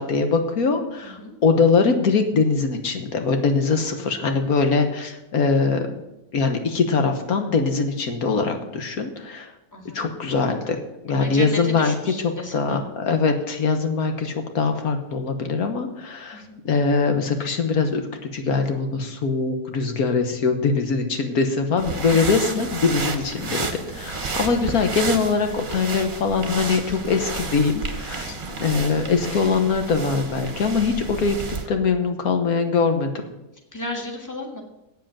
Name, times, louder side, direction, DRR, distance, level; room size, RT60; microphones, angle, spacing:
voice 1, 0.0-6.0 6.3-9.5 9.9-10.8 11.0-11.9 12.2-33.1, left 4 dB, 75° left, 6 dB, 1.6 m, -22 dB
voice 2, 1.0-1.4 3.9-4.6 9.7-10.1 11.2-12.8 16.3-16.6 22.1-22.4 28.3-28.6 33.7-34.6, left 1 dB, 10° left, 2 dB, 1.7 m, -35 dB
sound 1, 21.8-31.7, right 4 dB, 35° right, 1.2 m, -31 dB
8.4 x 7.6 x 8.8 m, 0.91 s
omnidirectional pair, 1.6 m